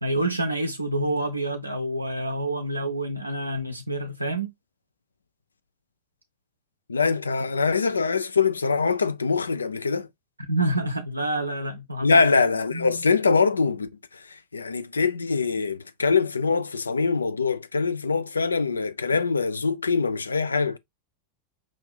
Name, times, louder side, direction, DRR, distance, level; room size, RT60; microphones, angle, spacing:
voice 1, 0.0-4.5 10.4-12.2 12.7-13.0, right 1 dB, 85° right, 0.4 m, -28 dB
voice 2, 6.9-10.1 12.0-13.9 14.5-20.8, left 4 dB, 75° left, 0.4 m, -23 dB
5.3 x 2.5 x 3.2 m
figure-of-eight pair, 90°, 0 cm